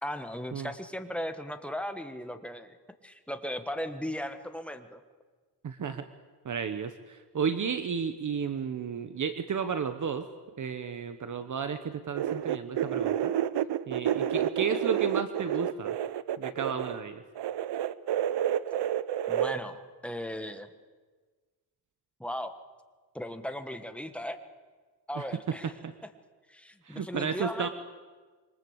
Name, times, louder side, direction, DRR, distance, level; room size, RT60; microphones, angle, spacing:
voice 1, 0.0-2.8 3.0-5.0 19.3-20.7 22.2-22.5 23.1-24.4 25.1-25.7 26.5-27.7, equal, 5° left, 7 dB, 1.3 m, -37 dB
voice 2, 5.6-6.1 6.4-10.3 10.6-13.3 13.9-16.0 16.4-17.2 25.1-25.2 25.6-25.9 26.8-27.7, right 6 dB, 45° right, 9 dB, 1.2 m, -33 dB
sound 1, 12.2-17.0 17.4-19.6, right 10 dB, 75° right, 0.9 m, -29 dB
27.0 x 23.5 x 8.1 m, 1.4 s
wide cardioid pair, 170°, 41 cm